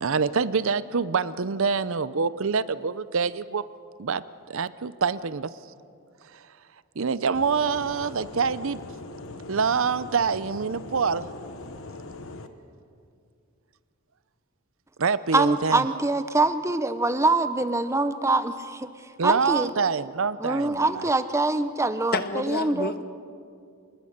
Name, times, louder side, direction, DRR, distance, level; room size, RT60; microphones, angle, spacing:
voice 1, 0.0-3.6 4.0-5.5 7.0-8.8 9.5-11.3 15.0-15.8 19.2-21.1, right 5 dB, 65° right, 16 dB, 0.6 m, -26 dB
sound 1, 7.3-12.5, left 2 dB, 65° left, 1.2 m, -41 dB
voice 2, 15.3-18.9 19.2-19.7 20.4-22.9, right 2 dB, 15° right, 11 dB, 0.7 m, -24 dB
voice 3, 22.1-23.0, left 3 dB, 45° left, 11 dB, 1.0 m, -29 dB
25.0 x 21.5 x 6.6 m, 2.3 s
head